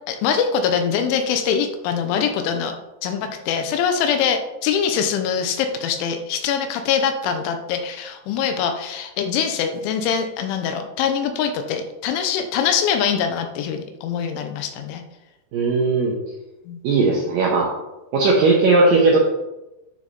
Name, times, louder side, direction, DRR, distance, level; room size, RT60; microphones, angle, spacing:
voice 1, 0.1-2.7 3.0-15.0 16.7-16.8, left 7 dB, 85° left, 7 dB, 3.2 m, -23 dB
voice 2, 15.5-16.1 16.8-17.7 18.1-19.2, right 3 dB, 75° right, -2 dB, 2.1 m, -17 dB
10.5 x 6.3 x 4.1 m, 0.97 s
omnidirectional pair, 5.6 m